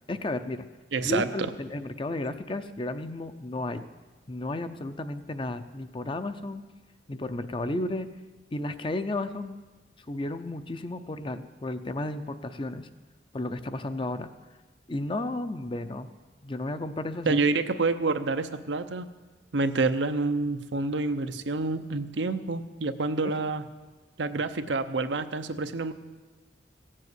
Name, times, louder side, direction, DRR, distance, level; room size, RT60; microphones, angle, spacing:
voice 1, 0.1-0.7 1.0-3.8 4.3-6.6 7.1-8.1 8.5-9.6 10.1-12.9 13.3-14.3 14.9-16.1 16.4-17.4, left 2 dB, 30° left, 10 dB, 0.6 m, -33 dB
voice 2, 0.9-1.5 17.3-19.1 19.5-23.6 24.2-25.9, right 3 dB, 85° right, 9 dB, 0.7 m, -28 dB
16.0 x 7.6 x 8.1 m, 1.3 s
head